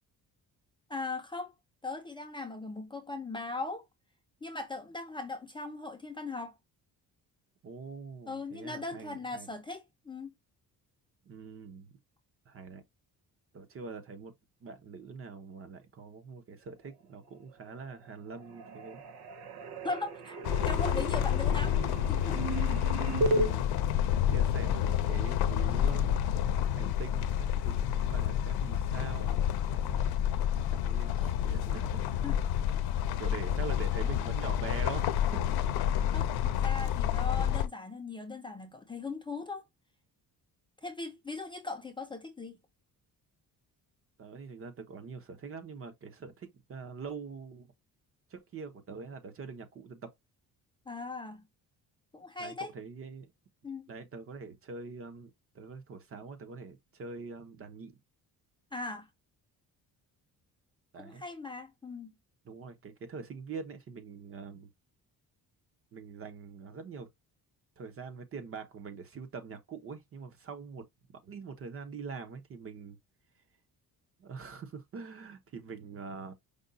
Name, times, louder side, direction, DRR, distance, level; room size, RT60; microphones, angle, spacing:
voice 1, 0.9-1.5 1.8-3.8 4.4-6.6 8.3-10.3 19.8-22.4 22.8-22.9 32.2-32.4 36.1-39.6 40.8-42.6 50.9-51.4 52.1-52.7 53.6-53.9 58.7-59.1 60.9-62.1, left 3 dB, 15° left, 0.6 m, -39 dB
voice 2, 7.6-9.5 11.3-11.9 12.5-12.8 13.5-14.3 14.6-19.0 23.2-23.8 24.3-26.2 26.7-30.1 30.7-32.3 33.2-35.2 35.5-35.6 44.2-47.7 48.3-50.1 52.4-53.3 53.9-58.0 60.9-61.2 62.4-64.7 65.9-67.1 67.8-70.8 71.2-73.0 74.2-76.3, right 5 dB, 35° right, 0.9 m, -44 dB
sound 1, 17.5-18.1 18.3-23.5, right 1 dB, 90° right, 0.8 m, -35 dB
sound 2, 20.4-37.7, left 10 dB, 90° left, 0.7 m, -29 dB
5.2 x 2.3 x 3.9 m
cardioid pair, 160°, 37 cm